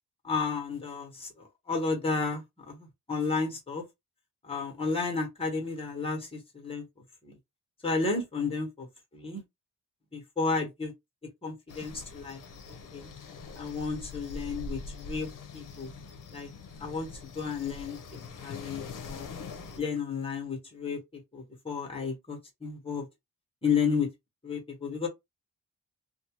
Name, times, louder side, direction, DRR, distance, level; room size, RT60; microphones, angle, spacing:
voice 1, 0.2-3.8 4.4-6.8 7.2-7.4 7.8-8.9 9.1-9.4 10.1-10.9 11.4-12.4 12.9-13.1 13.5-15.3 15.5-15.9 16.3-16.5 16.8-19.3 19.8-23.0 23.6-24.1 24.4-25.1, left 4 dB, 15° left, 1.2 m, -32 dB
sound 1, 11.7-19.8, left 3 dB, 60° left, 0.7 m, -43 dB
2.6 x 2.4 x 2.9 m
cardioid pair, 95°, 36 cm